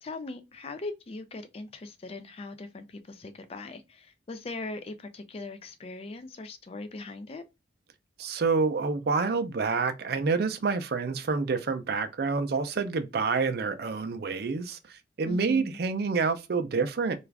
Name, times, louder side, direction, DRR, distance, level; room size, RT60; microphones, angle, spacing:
voice 1, 0.0-7.4 15.3-15.8, left 2 dB, 35° left, 0.4 m, -40 dB
voice 2, 8.2-17.1, right 4 dB, 60° right, 0.4 m, -28 dB
2.4 x 2.3 x 3.2 m
head